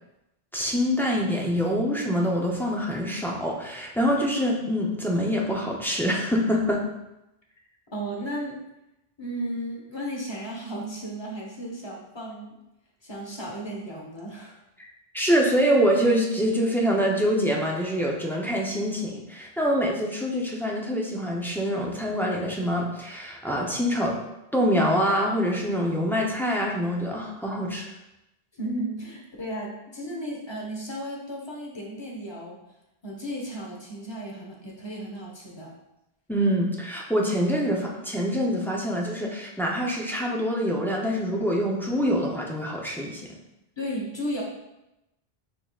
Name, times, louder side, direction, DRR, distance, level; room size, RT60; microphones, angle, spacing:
voice 1, 0.5-6.9 14.8-14.9 15.1-24.2 24.5-27.9 36.3-43.3, equal, 5° left, -2 dB, 0.3 m, -25 dB
voice 2, 7.9-8.6 9.2-12.6 13.0-14.6 28.6-32.6 33.0-35.7 43.8-44.4, right 1 dB, 30° left, -2 dB, 0.9 m, -34 dB
6.1 x 3.6 x 2.3 m, 0.92 s
omnidirectional pair, 1.0 m